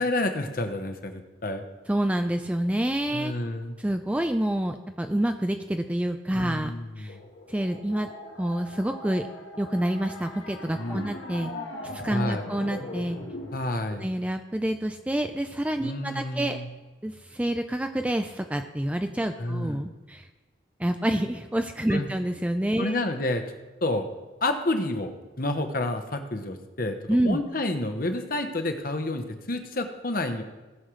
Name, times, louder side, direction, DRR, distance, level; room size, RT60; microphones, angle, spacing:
voice 1, 0.0-1.6 3.1-3.7 6.3-7.2 10.8-11.1 12.1-12.4 13.5-14.1 15.8-16.7 19.4-19.8 21.9-22.1 22.8-23.4 23.8-24.1 24.4-30.4, left 2 dB, 45° left, 6 dB, 0.9 m, -29 dB
voice 2, 1.9-3.3 3.8-7.2 7.5-8.1 8.4-9.2 9.6-11.5 11.8-13.2 14.0-16.6 17.0-20.3 20.8-23.0 27.1-27.4, right 1 dB, 5° right, 6 dB, 0.3 m, -28 dB
sound 1, 7.1-13.6, left 1 dB, 80° left, 1.3 m, -40 dB
18.5 x 6.4 x 3.2 m, 1.2 s
head